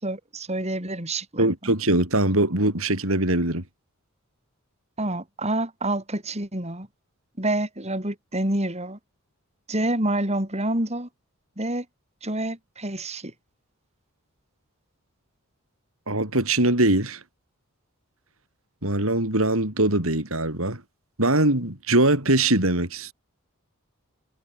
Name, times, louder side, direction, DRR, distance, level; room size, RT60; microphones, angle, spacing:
voice 1, 0.0-1.5 5.0-6.9 7.4-9.0 9.7-11.1 11.6-11.8 12.2-13.3, right 1 dB, 30° right, 6.6 m, -27 dB
voice 2, 1.4-3.6 16.1-17.2 18.8-20.8 21.2-23.1, right 2 dB, 75° right, 5.5 m, -22 dB
head